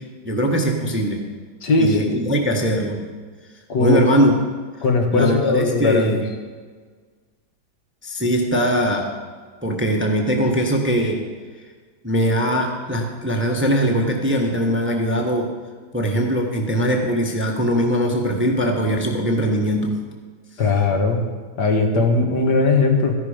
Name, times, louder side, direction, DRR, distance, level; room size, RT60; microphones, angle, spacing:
voice 1, 0.2-1.2 1.8-3.0 3.8-4.3 5.1-6.2 8.0-9.0 9.6-11.2 12.0-15.5 15.9-19.9, equal, 10° right, 1 dB, 1.0 m, -21 dB
voice 2, 1.6-2.2 3.7-4.0 4.8-6.2 20.6-21.2 21.6-23.1, left 3 dB, 70° left, 3 dB, 2.0 m, -19 dB
14.0 x 11.0 x 5.1 m, 1.5 s
omnidirectional pair, 1.9 m